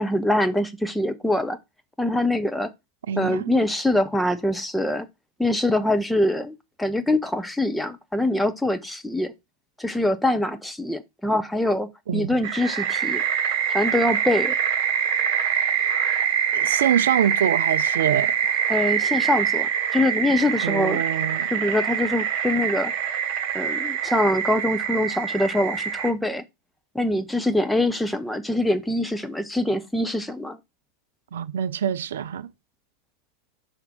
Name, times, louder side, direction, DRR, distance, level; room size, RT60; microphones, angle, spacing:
voice 1, 0.0-1.6 2.0-2.7 3.2-5.1 5.4-9.3 9.8-13.2 13.7-14.5 18.7-21.0 21.5-22.9 23.5-26.4 26.9-30.6, left 1 dB, 5° left, 0.6 m, -24 dB
voice 2, 3.1-3.5 12.1-12.4 16.5-18.3 20.6-21.5 31.3-32.5, right 9 dB, 60° right, 0.4 m, -25 dB
sound 1, 12.4-26.1, right 8 dB, 45° right, 1.2 m, -25 dB
5.9 x 3.5 x 5.2 m
figure-of-eight pair, 90°, 0 cm